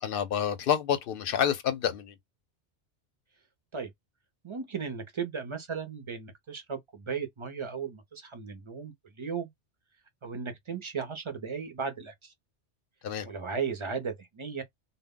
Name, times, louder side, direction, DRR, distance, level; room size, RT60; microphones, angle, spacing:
voice 1, 0.0-2.1 13.0-13.3, left 8 dB, 60° left, 0.6 m, -28 dB
voice 2, 4.4-9.5 10.2-12.3 13.2-14.6, right 6 dB, 45° right, 0.4 m, -36 dB
2.1 x 2.0 x 3.5 m
omnidirectional pair, 1.2 m